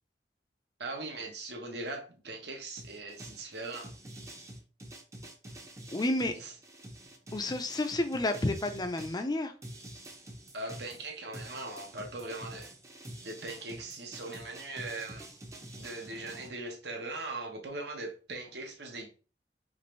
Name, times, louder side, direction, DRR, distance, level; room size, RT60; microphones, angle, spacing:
voice 1, 0.8-3.9 6.3-6.5 10.5-12.7 13.2-15.2 15.7-19.1, right 2 dB, 65° right, 1.1 m, -40 dB
sound 1, 2.8-9.2 9.6-16.5, right 1 dB, 15° right, 0.7 m, -47 dB
voice 2, 5.9-6.3 7.3-9.5, left 2 dB, 25° left, 0.6 m, -30 dB
5.2 x 2.6 x 3.2 m
head